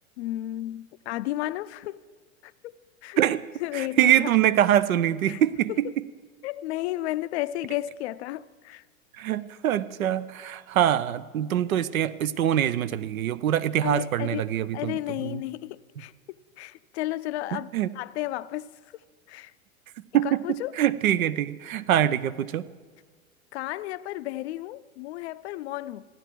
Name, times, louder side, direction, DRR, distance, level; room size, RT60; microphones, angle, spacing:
voice 1, 0.2-2.0 2.4-2.7 3.0-3.2 3.6-4.3 5.3-5.4 5.7-6.0 6.4-8.8 13.8-16.1 16.6-18.7 19.3-19.5 20.2-20.8 23.5-26.0, left 15 dB, 50° left, 0.5 m, -33 dB
voice 2, 3.7-5.7 9.2-15.4 17.5-17.9 20.1-22.6, right 11 dB, 75° right, 0.7 m, -24 dB
15.0 x 10.5 x 4.6 m
hypercardioid pair, 100°, 42 cm